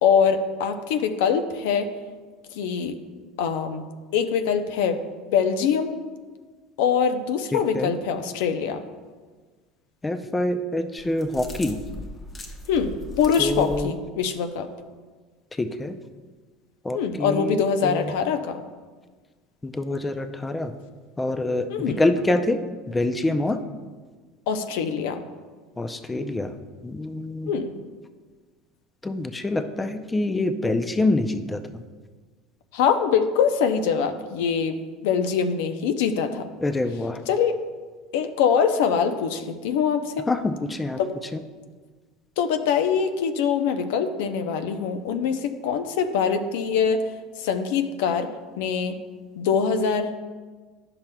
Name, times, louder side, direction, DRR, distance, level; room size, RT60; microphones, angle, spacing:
voice 1, 0.0-1.9 2.5-3.0 3.4-3.8 4.1-5.0 5.3-5.9 6.8-8.8 12.7-14.7 16.9-18.6 21.7-22.0 24.5-25.2 27.5-27.7 32.7-34.8 35.0-36.5 37.3-37.6 38.1-40.3 41.0-41.1 42.4-47.0 47.4-48.3 48.6-49.0 49.4-50.2, left 6 dB, 75° left, 8 dB, 0.5 m, -23 dB
voice 2, 7.5-7.9 10.0-11.8 13.4-13.9 15.6-16.0 16.8-18.1 19.6-20.7 21.2-21.7 22.0-22.6 22.9-23.6 25.8-26.5 26.8-27.5 29.0-31.6 36.6-37.2 40.3-41.0, left 2 dB, 15° left, 8 dB, 0.4 m, -26 dB
sound 1, 11.0-13.9, left 1 dB, 30° left, 1.0 m, -38 dB
10.5 x 5.8 x 2.2 m, 1.4 s
supercardioid pair, 95°, 0 cm